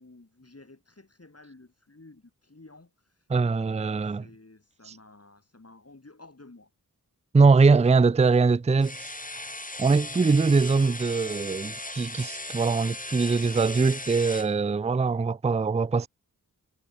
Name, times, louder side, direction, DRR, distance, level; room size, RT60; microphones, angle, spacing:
voice 1, 0.0-6.7, left 2 dB, 40° left, 6.3 m, -53 dB
voice 2, 3.3-4.2 7.3-9.5 9.8-16.1, right 4 dB, 20° right, 0.4 m, -22 dB
sound 1, 8.8-14.5, left 2 dB, 20° left, 2.9 m, -37 dB
wide cardioid pair, 55°, 37 cm